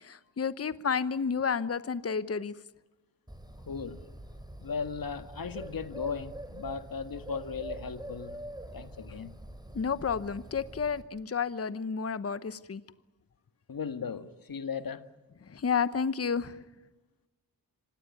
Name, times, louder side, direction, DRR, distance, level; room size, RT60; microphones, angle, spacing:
voice 1, 0.0-2.5 9.7-12.8 15.5-16.6, left 6 dB, 35° left, 1.0 m, -31 dB
Bird, 3.3-11.0, right 1 dB, 10° right, 3.8 m, -45 dB
voice 2, 3.6-4.0 4.6-8.4 8.7-9.3 13.7-15.0, left 6 dB, 50° left, 1.8 m, -37 dB
26.0 x 18.0 x 9.5 m
supercardioid pair, 45°, 43 cm